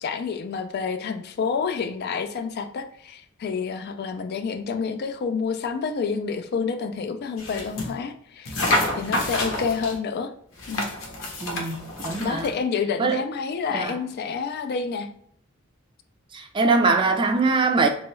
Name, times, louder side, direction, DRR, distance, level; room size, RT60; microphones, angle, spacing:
voice 1, 0.0-8.6 9.0-10.3 10.7-10.9 12.2-15.1, left 5 dB, 50° left, 0.3 m, -28 dB
sound 1, 7.4-7.9 8.5-10.0 10.6-12.5, left 1 dB, 75° left, 0.8 m, -28 dB
voice 2, 11.4-12.5 13.0-13.2 13.7-14.0 16.3-17.9, right 3 dB, 25° right, 0.4 m, -22 dB
3.0 x 2.3 x 3.0 m
head